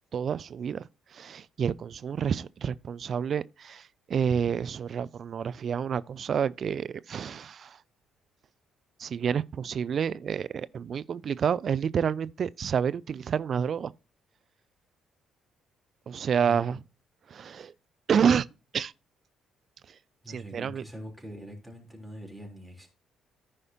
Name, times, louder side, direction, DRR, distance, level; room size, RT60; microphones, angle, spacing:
voice 1, 0.1-7.8 9.0-13.9 16.1-16.8 17.3-17.7 18.1-18.5 18.7-18.9 19.9-20.0 20.3-20.8, right 7 dB, 45° right, 0.3 m, -29 dB
voice 2, 20.2-22.9, equal, ahead, 3.5 m, -43 dB
14.5 x 4.9 x 2.8 m
figure-of-eight pair, 45°, 0 cm